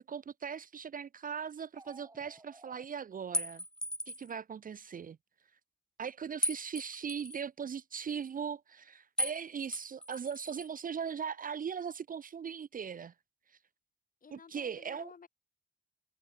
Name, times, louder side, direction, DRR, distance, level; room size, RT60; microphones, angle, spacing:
voice 1, 0.0-3.6 4.1-5.2 6.0-13.1 13.5-13.6 14.3-15.1, right 7 dB, 45° right, 0.8 m, -39 dB
sound 1, 1.7-2.9, right 2 dB, 20° right, 5.6 m, -55 dB
sound 2, 3.3-4.3 6.4-7.4 9.2-9.4 9.7-10.7, left 1 dB, 5° left, 0.6 m, -36 dB
voice 2, 14.2-15.3, left 6 dB, 45° left, 5.9 m, -54 dB
cardioid pair, 115°, 20 cm